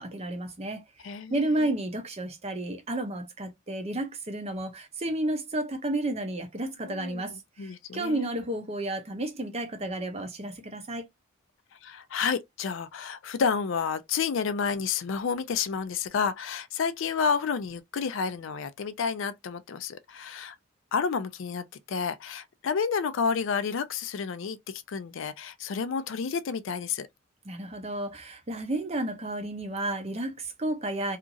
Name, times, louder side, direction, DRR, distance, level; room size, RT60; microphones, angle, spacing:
voice 1, 0.0-11.1 27.5-31.2, right 1 dB, 30° right, 0.6 m, -32 dB
voice 2, 1.0-1.7 6.8-7.2 7.6-8.3 11.8-20.6 20.9-27.1, left 6 dB, 65° left, 0.4 m, -30 dB
2.8 x 2.4 x 2.5 m
head